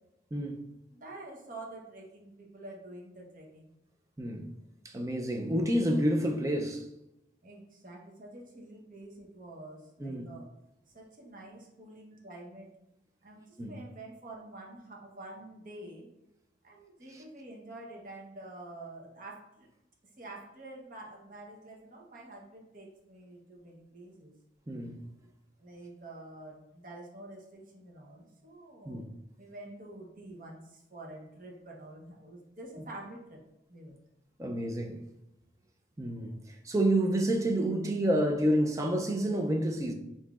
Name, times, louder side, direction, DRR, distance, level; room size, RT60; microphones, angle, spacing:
voice 1, 0.3-0.6 4.2-4.5 4.8-6.9 10.0-10.3 13.6-13.8 17.1-17.2 24.7-25.0 28.9-29.1 34.4-35.0 36.0-39.9, right 1 dB, 15° right, 0.4 m, -29 dB
voice 2, 0.9-3.7 7.4-10.5 10.9-12.7 13.2-16.1 16.6-19.7 20.0-24.3 25.6-29.0 29.4-33.4 33.7-34.0, right 2 dB, 45° right, 0.8 m, -47 dB
5.7 x 2.6 x 2.4 m
head